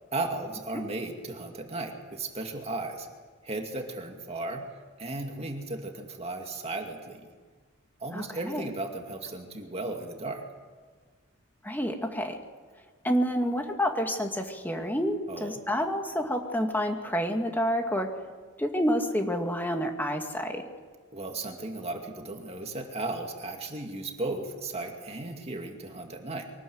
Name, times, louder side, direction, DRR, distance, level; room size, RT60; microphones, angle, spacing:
voice 1, 0.1-3.1 3.4-4.7 5.0-7.3 8.0-10.4 15.3-15.6 21.1-26.5, right 2 dB, 30° right, 3 dB, 2.2 m, -35 dB
voice 2, 8.1-8.7 11.6-12.4 13.0-18.1 18.6-20.6, equal, 10° left, 4 dB, 2.0 m, -29 dB
24.0 x 19.0 x 7.9 m, 1.5 s
head